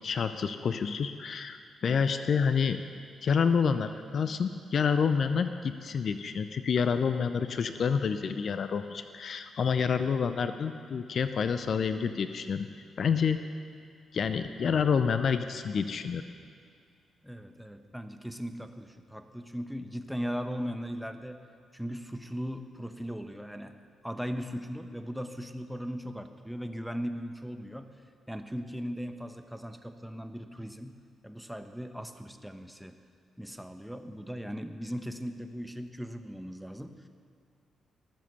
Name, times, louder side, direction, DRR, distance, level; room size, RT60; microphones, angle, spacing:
voice 1, 0.0-2.8 3.2-12.7 13.0-13.4 14.1-16.2, left 6 dB, 55° left, 10 dB, 0.6 m, -28 dB
voice 2, 17.2-21.4 21.7-23.7 24.0-27.9 28.3-33.0 33.4-37.1, equal, ahead, 7 dB, 1.2 m, -38 dB
19.5 x 7.5 x 6.8 m, 2.2 s
hypercardioid pair, 40°, 0 cm